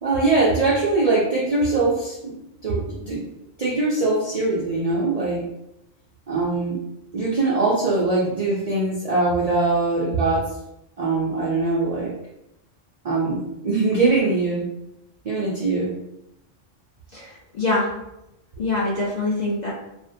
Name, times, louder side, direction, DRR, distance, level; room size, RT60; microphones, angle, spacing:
voice 1, 0.0-3.3 3.6-5.5 6.3-6.8 7.1-10.5 11.0-12.1 13.0-14.7 15.2-16.0, right 3 dB, 80° right, -5 dB, 0.3 m, -22 dB
voice 2, 17.1-17.9 18.6-19.7, left 2 dB, 60° left, -6 dB, 0.4 m, -24 dB
2.5 x 2.1 x 2.6 m, 0.87 s
omnidirectional pair, 1.3 m